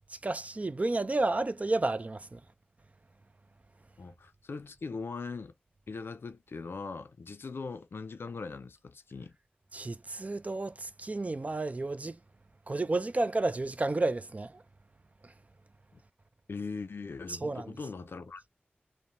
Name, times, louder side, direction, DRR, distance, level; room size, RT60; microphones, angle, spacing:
voice 1, 0.2-2.4 9.7-12.2 12.7-14.6 15.2-15.3 17.3-17.7, right 2 dB, 40° right, 0.3 m, -31 dB
voice 2, 4.0-5.5 5.9-9.3 16.5-18.5, left 4 dB, 75° left, 0.4 m, -40 dB
2.9 x 2.1 x 2.5 m
cardioid pair, 45°, 4 cm